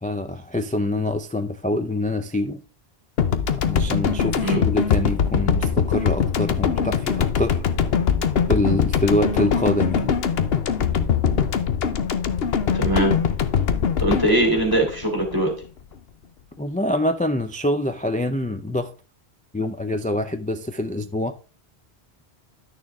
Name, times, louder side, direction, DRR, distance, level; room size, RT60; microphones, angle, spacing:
voice 1, 0.0-2.6 3.6-7.6 8.5-10.1 16.6-18.9 19.5-21.4, left 1 dB, 10° left, 0.3 m, -25 dB
sound 1, 3.2-15.6, left 7 dB, 65° left, 1.0 m, -22 dB
voice 2, 12.7-13.1 14.0-15.5, right 1 dB, 20° right, 3.1 m, -21 dB
11.5 x 6.6 x 3.6 m
omnidirectional pair, 1.1 m